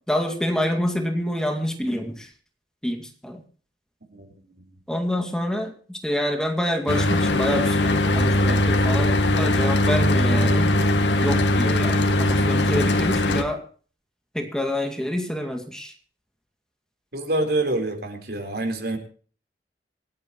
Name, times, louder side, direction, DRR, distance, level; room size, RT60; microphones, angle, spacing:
voice 1, 0.1-2.3 2.8-3.4 4.9-10.8 11.2-13.6 14.3-15.9, equal, 5° left, 4 dB, 2.2 m, -27 dB
Mechanical fan, 6.9-13.4, left 1 dB, 85° left, 1.9 m, -20 dB
voice 2, 17.1-19.0, right 2 dB, 65° right, 5 dB, 4.0 m, -26 dB
27.5 x 10.0 x 3.0 m, 0.41 s
head